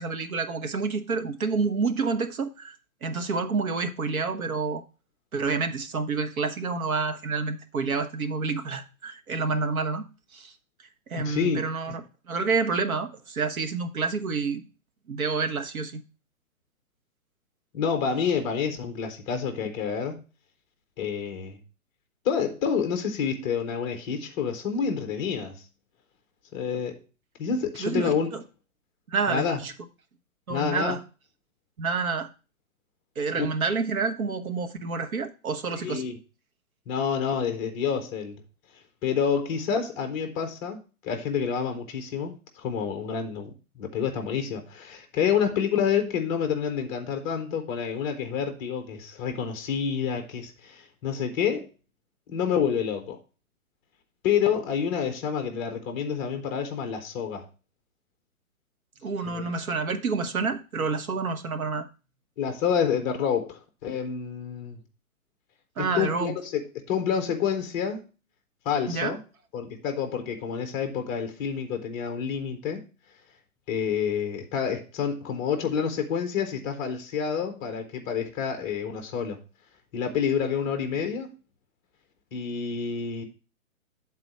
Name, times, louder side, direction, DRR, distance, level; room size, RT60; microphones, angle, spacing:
voice 1, 0.0-2.8 3.0-4.8 5.3-10.0 10.3-10.5 11.1-14.6 15.1-16.0 27.8-28.4 29.1-29.7 30.5-31.0 31.8-32.3 33.2-36.0 59.0-61.9 65.8-66.3 68.9-69.2, right 4 dB, 75° right, 1.3 m, -28 dB
voice 2, 11.2-11.6 17.7-20.2 21.0-21.6 22.2-25.6 26.5-27.0 27.4-28.3 29.3-29.6 30.5-31.0 33.4-33.5 35.8-36.2 36.9-38.4 39.0-40.8 41.0-51.7 52.3-53.2 54.2-57.5 59.2-59.5 62.4-64.8 65.8-68.0 68.6-69.2 69.5-72.8 73.7-79.4 79.9-81.3 82.3-83.2, left 7 dB, 10° left, 0.6 m, -28 dB
7.7 x 4.1 x 5.5 m
hypercardioid pair, 150°, 42 cm